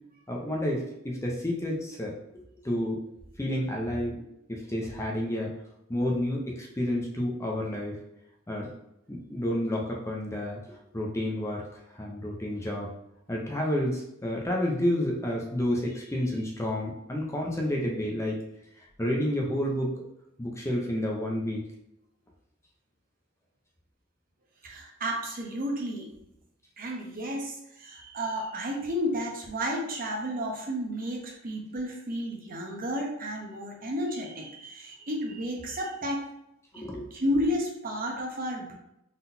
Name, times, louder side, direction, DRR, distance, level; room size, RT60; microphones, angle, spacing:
voice 1, 0.3-2.1 2.6-3.0 3.4-4.2 4.5-5.5 5.9-8.0 8.5-8.7 9.1-10.6 10.9-11.7 11.9-12.9 13.3-18.4 19.0-19.9 20.4-21.7 36.7-37.1, left 1 dB, 15° left, -1 dB, 0.6 m, -30 dB
voice 2, 24.6-26.1 26.8-36.2 36.7-38.7, equal, 45° right, 0 dB, 0.9 m, -32 dB
4.0 x 3.8 x 2.7 m, 0.83 s
head